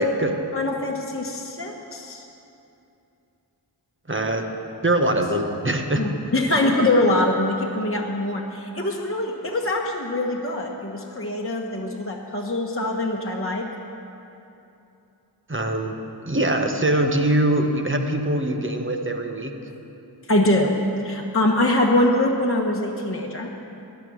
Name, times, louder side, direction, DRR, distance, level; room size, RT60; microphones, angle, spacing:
voice 1, 0.0-0.3 4.1-4.5 4.8-6.3 15.5-16.0 16.2-19.6, right 1 dB, 25° right, 4 dB, 1.3 m, -23 dB
voice 2, 0.5-2.2 6.0-13.7 20.3-23.5, left 1 dB, 30° left, -1 dB, 1.3 m, -23 dB
14.5 x 10.5 x 6.4 m, 2.8 s
wide cardioid pair, 50°, 44 cm